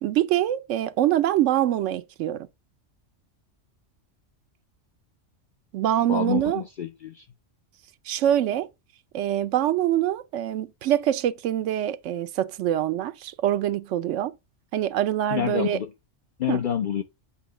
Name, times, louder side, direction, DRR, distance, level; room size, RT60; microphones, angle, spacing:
voice 1, 0.0-2.5 5.7-6.6 8.1-8.7 9.1-14.3 14.7-15.8 16.5-16.6, right 12 dB, 80° right, 0.9 m, -24 dB
voice 2, 6.1-7.3 15.3-15.9 16.4-17.0, left 9 dB, 55° left, 0.6 m, -27 dB
8.4 x 2.8 x 6.0 m
omnidirectional pair, 1.3 m